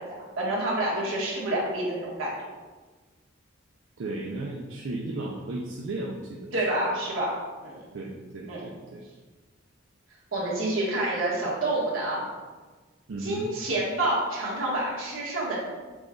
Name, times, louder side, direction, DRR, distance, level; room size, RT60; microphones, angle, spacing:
voice 1, 0.4-2.3 6.5-7.3 7.6-7.8 8.5-8.7 10.3-12.2 13.2-15.6, right 1 dB, 90° right, -6 dB, 1.5 m, -28 dB
voice 2, 4.0-6.7 7.9-9.1 13.1-13.5, right 2 dB, 75° right, -1 dB, 0.5 m, -35 dB
6.0 x 2.3 x 3.7 m, 1.3 s
head